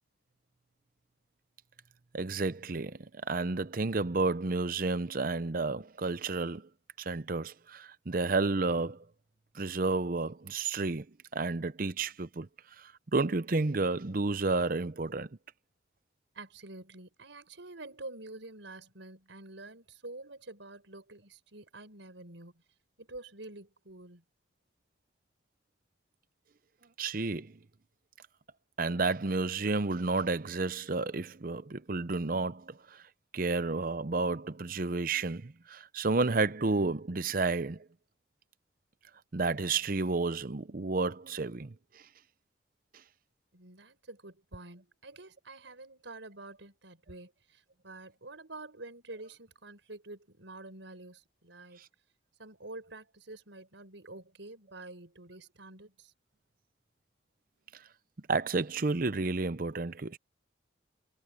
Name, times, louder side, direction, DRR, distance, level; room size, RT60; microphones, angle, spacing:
voice 1, 2.1-6.7 7.0-9.0 9.5-11.1 11.3-12.5 12.8-15.3 27.0-27.5 28.8-33.0 33.3-37.9 39.3-41.7 58.3-60.2, right 3 dB, 45° right, 0.7 m, -31 dB
voice 2, 16.3-22.6 23.0-24.2 43.5-51.8 52.4-56.1, right 2 dB, 75° right, 4.9 m, -48 dB
head